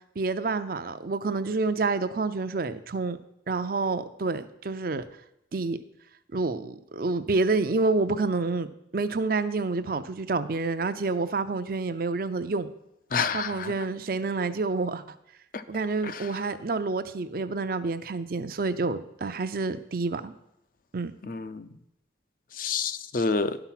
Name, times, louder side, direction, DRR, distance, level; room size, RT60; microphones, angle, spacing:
voice 1, 0.2-3.2 3.5-5.0 5.5-5.8 6.3-12.7 13.3-15.0 15.7-20.3 20.9-21.1, right 3 dB, 55° right, 11 dB, 0.5 m, -28 dB
voice 2, 13.1-13.7 15.5-15.6 16.0-16.3 21.2-21.7 22.5-23.6, left 4 dB, 50° left, 12 dB, 0.5 m, -29 dB
11.5 x 5.9 x 5.8 m, 0.81 s
head